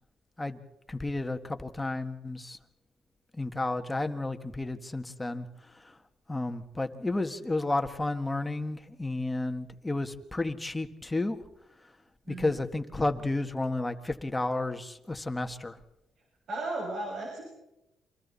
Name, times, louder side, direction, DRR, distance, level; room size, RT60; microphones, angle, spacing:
voice 1, 0.9-2.6 3.4-5.5 6.3-11.4 12.3-15.8, left 2 dB, 15° left, 7 dB, 1.8 m, -32 dB
voice 2, 12.3-12.7 16.5-17.4, right 2 dB, 60° right, -1 dB, 6.4 m, -35 dB
29.0 x 24.0 x 4.2 m, 0.88 s
cardioid pair, 90°, 0 cm